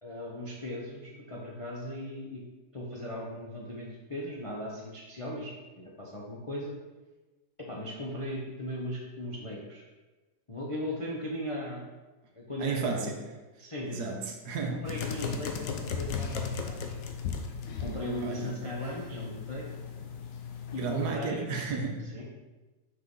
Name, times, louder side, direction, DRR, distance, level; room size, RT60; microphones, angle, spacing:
voice 1, 0.0-2.4 2.7-6.7 7.6-9.8 10.5-11.9 12.3-13.1 13.6-14.2 14.7-16.8 17.8-19.7 20.7-21.5 22.0-22.2, left 1 dB, 35° left, -3 dB, 0.5 m, -37 dB
voice 2, 12.6-13.2 13.9-14.8 18.2-18.5 20.8-22.0, right 4 dB, 70° right, 2 dB, 1.3 m, -33 dB
sound 1, 14.8-21.1, left 6 dB, 65° left, 1.0 m, -37 dB
5.9 x 5.5 x 3.8 m, 1.2 s
omnidirectional pair, 1.9 m